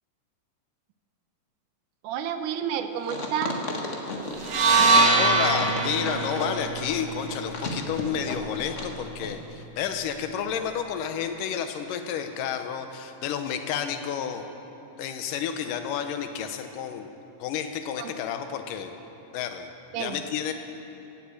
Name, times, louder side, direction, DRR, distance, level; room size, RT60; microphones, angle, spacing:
voice 1, 2.0-3.6 18.0-18.1 19.9-20.2, right 8 dB, 80° right, 8 dB, 2.2 m, -30 dB
sound 1, 3.0-8.9 9.2-9.3, left 2 dB, 50° left, 0.8 m, -34 dB
sound 2, 4.4-8.6, right 3 dB, 60° right, 2.3 m, -23 dB
voice 2, 5.2-14.5 15.0-17.1 17.4-18.9 19.3-20.5, left 8 dB, 85° left, 7 dB, 2.5 m, -31 dB
16.5 x 8.3 x 8.5 m, 3.0 s
omnidirectional pair, 3.7 m